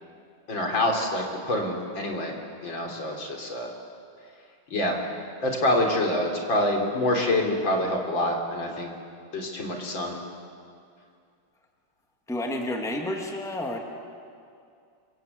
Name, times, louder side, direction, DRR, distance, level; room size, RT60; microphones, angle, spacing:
voice 1, 0.5-2.3 2.6-3.7 4.7-5.0 5.4-8.9 9.3-10.1, left 1 dB, 60° left, 1 dB, 4.3 m, -26 dB
voice 2, 12.3-13.8, left 1 dB, ahead, 1 dB, 2.3 m, -30 dB
28.0 x 25.0 x 8.1 m, 2.4 s
omnidirectional pair, 2.3 m